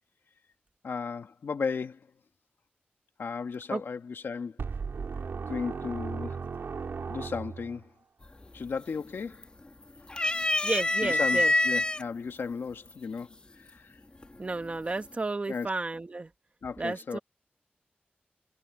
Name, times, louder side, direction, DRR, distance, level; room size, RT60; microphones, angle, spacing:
voice 1, 0.8-2.1 3.2-4.6 5.5-6.4 7.1-7.9 8.5-9.5 11.0-14.0 15.5-15.7 16.6-17.2, left 5 dB, 85° left, 1.5 m, -35 dB
sound 1, 4.6-7.8, right 5 dB, 80° right, 4.9 m, -36 dB
sound 2, 8.2-8.6 9.0-9.7 10.1-12.0 12.9-13.0 14.2-14.7, left 2 dB, 25° left, 2.1 m, -26 dB
voice 2, 10.6-11.5 14.4-16.3 16.8-17.2, right 3 dB, 35° right, 1.5 m, -32 dB
wide cardioid pair, 95°, 4 cm